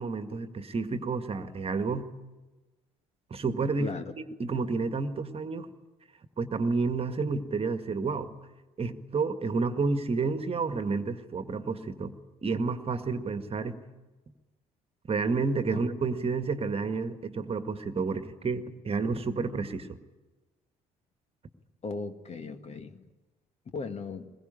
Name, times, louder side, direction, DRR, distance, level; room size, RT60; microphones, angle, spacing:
voice 1, 0.0-2.1 3.3-3.9 4.4-5.7 6.4-8.4 8.8-13.8 15.1-20.0, right 4 dB, 30° right, 9 dB, 1.9 m, -30 dB
voice 2, 21.8-23.1 23.7-24.3, left 4 dB, 35° left, 9 dB, 1.9 m, -37 dB
22.0 x 21.5 x 10.0 m, 1.2 s
figure-of-eight pair, 50°, 19 cm